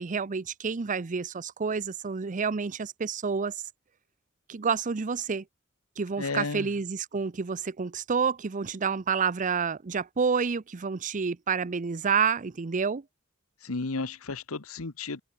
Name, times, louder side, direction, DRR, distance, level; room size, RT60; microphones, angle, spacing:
voice 1, 0.0-3.6 4.5-5.4 6.0-13.0, right 5 dB, 35° right, 0.6 m, -29 dB
voice 2, 6.2-6.7 13.6-15.2, left 3 dB, 80° left, 1.3 m, -33 dB
head